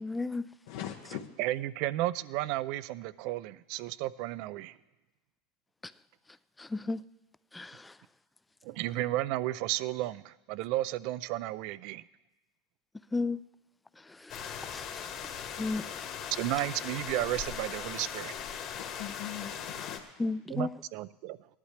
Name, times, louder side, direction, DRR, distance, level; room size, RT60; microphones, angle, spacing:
voice 1, 0.0-0.5 6.6-7.0 7.5-7.9 13.1-13.4 14.2-15.1 15.6-15.8 20.2-20.7, left 3 dB, 10° left, 0.3 m, -34 dB
voice 2, 0.7-1.3 18.7-20.3, left 11 dB, 75° left, 1.0 m, -41 dB
voice 3, 1.4-4.8 8.6-12.0 16.3-18.4 20.5-21.4, right 16 dB, 60° right, 0.4 m, -33 dB
sound 1, 14.3-20.0, left 8 dB, 45° left, 1.6 m, -39 dB
17.5 x 11.0 x 3.3 m
supercardioid pair, 120°, 0 cm